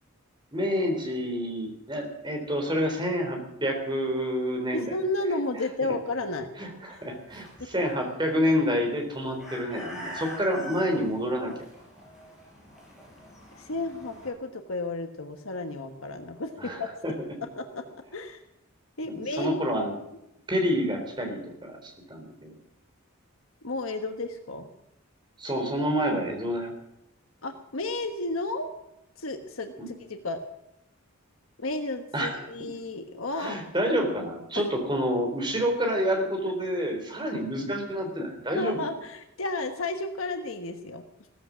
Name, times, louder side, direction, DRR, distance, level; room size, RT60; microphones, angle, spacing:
voice 1, 0.5-4.9 5.8-5.9 6.6-11.7 16.6-16.8 17.0-17.1 19.1-19.9 20.5-22.5 25.4-26.7 32.1-32.5 33.4-38.8, equal, 20° right, 3 dB, 3.6 m, -28 dB
voice 2, 4.7-6.5 6.9-7.0 13.6-17.0 17.6-17.8 18.1-18.4 19.0-19.6 23.6-24.7 27.4-28.7 29.2-30.4 31.6-33.6 38.6-41.0, left 2 dB, 75° left, 6 dB, 1.3 m, -32 dB
sound 1, 6.9-14.3, equal, ahead, 6.7 m, -44 dB
16.0 x 14.0 x 6.3 m, 0.84 s
head